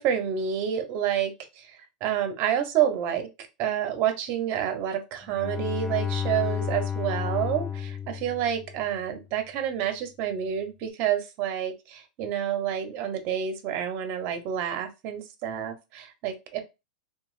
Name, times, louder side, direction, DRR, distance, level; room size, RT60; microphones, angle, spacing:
voice 1, 0.0-1.7 2.0-3.2 3.6-16.6, right 9 dB, 45° right, 7 dB, 0.7 m, -28 dB
Bowed string instrument, 5.2-9.0, left 8 dB, 10° left, 0.6 m, -32 dB
3.0 x 2.2 x 2.4 m, 0.25 s
supercardioid pair, 130°, 4 cm